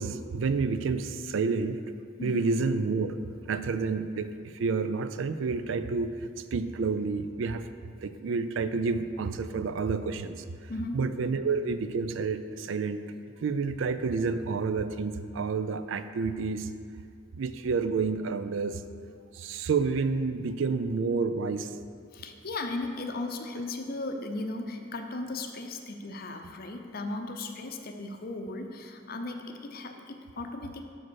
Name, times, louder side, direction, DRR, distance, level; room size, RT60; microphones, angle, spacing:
voice 1, 0.0-1.8 2.2-3.2 3.4-6.1 6.5-7.7 8.0-13.0 13.4-16.7 17.3-18.8 19.3-21.7 23.6-23.7, right 4 dB, 70° right, 11 dB, 0.4 m, -29 dB
voice 2, 10.7-11.0 22.1-30.8, left 2 dB, 50° left, 5 dB, 0.6 m, -36 dB
6.0 x 5.0 x 6.3 m, 2.4 s
head